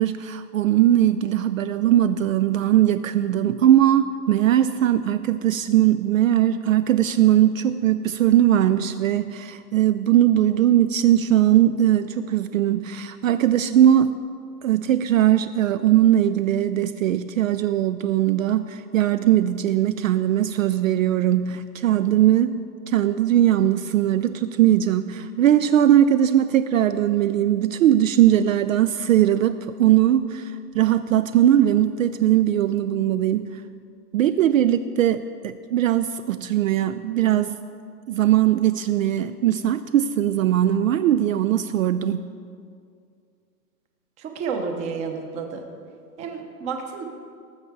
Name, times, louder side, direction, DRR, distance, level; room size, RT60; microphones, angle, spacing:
voice 1, 0.0-14.2 14.6-22.6 22.9-33.6 34.1-37.5 38.1-42.3, right 11 dB, 60° right, 12 dB, 0.5 m, -20 dB
voice 2, 44.2-45.6 46.2-47.1, right 5 dB, 15° right, 4 dB, 0.7 m, -30 dB
19.0 x 7.0 x 4.6 m, 2.3 s
hypercardioid pair, 150°, 47 cm